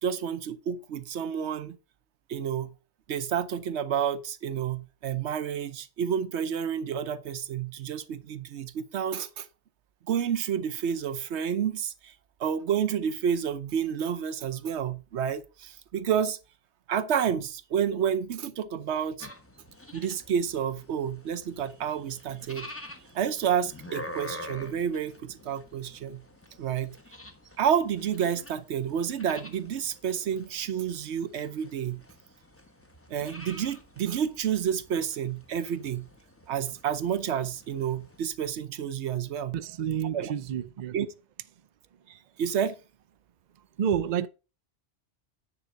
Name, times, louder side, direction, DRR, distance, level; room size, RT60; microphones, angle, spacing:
voice 1, 0.0-1.8 2.3-2.7 3.1-9.5 10.1-12.1 12.4-16.4 16.9-19.3 19.9-22.7 23.1-26.2 26.6-26.9 27.6-32.0 33.1-36.1 36.5-39.6 40.1-40.3 40.9-41.1 42.1-42.7, right 8 dB, 75° right, 1.0 m, -30 dB
sound 1, 19.2-38.2, left 1 dB, 15° left, 0.9 m, -47 dB
voice 2, 39.5-41.0 43.8-44.3, right 9 dB, 55° right, 0.5 m, -29 dB
9.7 x 4.0 x 6.2 m
omnidirectional pair, 1.2 m